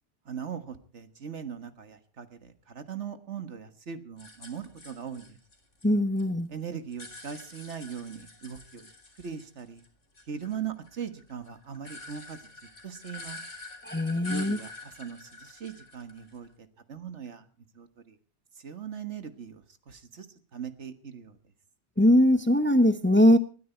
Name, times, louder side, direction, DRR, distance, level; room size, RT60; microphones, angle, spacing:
voice 1, 0.3-5.4 6.5-8.9 9.2-9.8 10.3-12.4 12.8-13.4 14.2-17.4 17.8-18.2 18.6-20.3 20.5-21.4, right 7 dB, 75° right, 1.8 m, -40 dB
sound 1, 4.2-6.2 6.5-9.9 10.1-16.5, left 2 dB, 85° left, 3.5 m, -46 dB
voice 2, 5.8-6.5 13.8-14.6 22.0-23.4, left 1 dB, 10° left, 0.8 m, -21 dB
19.5 x 13.0 x 4.4 m
omnidirectional pair, 1.2 m